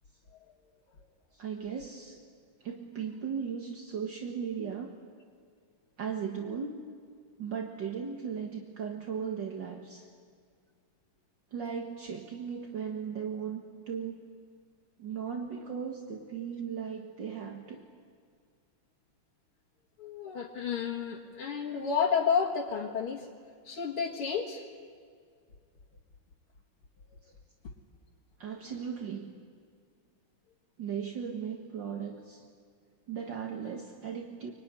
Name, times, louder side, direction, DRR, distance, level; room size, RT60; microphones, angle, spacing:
voice 1, 1.3-2.2 2.6-4.9 6.0-6.8 7.4-10.1 11.5-14.2 15.0-17.9 27.2-27.3 28.4-29.3 30.8-32.4 33.1-34.5, right 7 dB, 60° right, 2 dB, 2.1 m, -37 dB
voice 2, 20.0-23.3 23.6-24.6 27.6-27.7, left 6 dB, 85° left, -3 dB, 2.7 m, -31 dB
25.0 x 24.0 x 9.9 m, 2.1 s
omnidirectional pair, 2.4 m